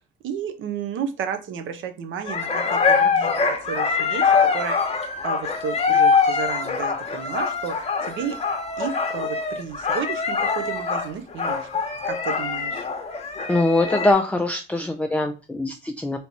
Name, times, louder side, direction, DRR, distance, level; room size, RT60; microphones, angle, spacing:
voice 1, 0.2-4.8 5.2-8.4 8.8-11.7 12.0-12.8, right 7 dB, 80° right, 8 dB, 0.7 m, -32 dB
sound 1, 2.3-14.1, left 5 dB, 30° left, 0.9 m, -23 dB
voice 2, 13.5-16.2, left 2 dB, 5° left, 4 dB, 0.4 m, -22 dB
3.4 x 2.9 x 4.1 m, 0.31 s
cardioid pair, 90°, 20 cm